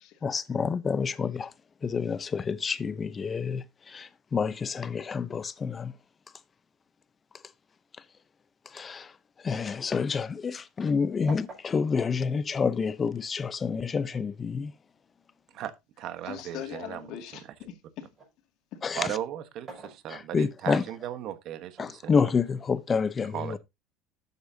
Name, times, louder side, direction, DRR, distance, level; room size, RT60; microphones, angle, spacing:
voice 1, 0.2-1.5 1.8-5.9 8.7-9.1 9.4-14.7 18.8-19.1 20.1-20.8 21.8-23.6, left 5 dB, 25° left, 0.7 m, -28 dB
sound 1, 9.6-10.9 11.3-13.2 14.1-16.6 17.1-18.4 19.4-20.6 21.7-22.7, right 3 dB, 30° right, 5.8 m, -49 dB
voice 2, 15.5-17.0 18.9-22.1 23.3-23.6, right 11 dB, 55° right, 1.3 m, -36 dB
voice 3, 16.2-18.1 18.7-18.8, left 11 dB, 60° left, 2.2 m, -41 dB
11.5 x 8.2 x 2.8 m
supercardioid pair, 130°, 0 cm